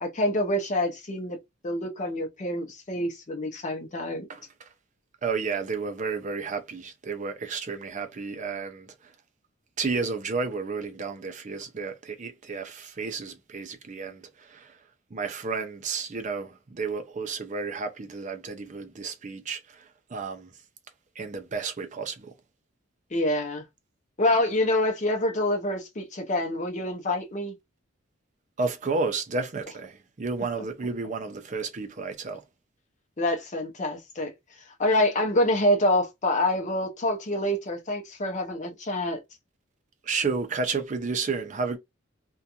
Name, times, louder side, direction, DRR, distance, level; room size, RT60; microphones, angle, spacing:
voice 1, 0.0-1.4 1.6-4.3 23.1-23.6 24.2-27.5 33.2-34.3 34.8-39.2, left 1 dB, 35° left, 0.6 m, -26 dB
voice 2, 4.3-4.7 5.2-9.1 9.8-14.8 15.1-20.5 21.2-22.3 28.6-32.4 40.0-41.8, right 4 dB, 40° right, 0.5 m, -32 dB
2.5 x 2.2 x 2.8 m
head